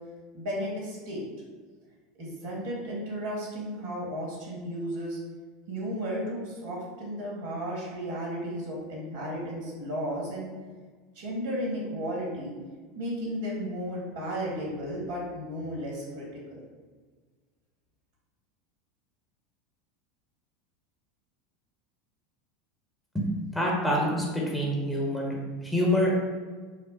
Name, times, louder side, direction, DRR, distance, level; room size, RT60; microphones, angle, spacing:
voice 1, 0.3-1.2 2.2-5.2 5.7-10.5 11.1-12.5 12.9-16.2 16.5-16.6, equal, 60° right, -3 dB, 1.5 m, -34 dB
voice 2, 23.5-26.1, equal, 5° left, -3 dB, 1.0 m, -26 dB
4.9 x 2.0 x 4.3 m, 1.5 s
figure-of-eight pair, 80°, 0 cm